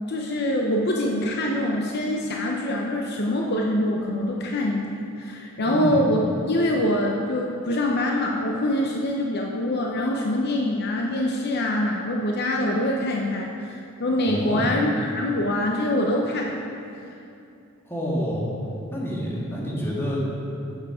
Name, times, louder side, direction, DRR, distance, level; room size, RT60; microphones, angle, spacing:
voice 1, 0.1-6.2 6.5-16.5, left 1 dB, 50° left, 0 dB, 0.8 m, -24 dB
voice 2, 5.6-6.0 14.2-14.7 17.9-18.5 18.9-20.2, equal, 10° left, -5 dB, 2.0 m, -28 dB
11.5 x 7.4 x 4.9 m, 2.7 s
head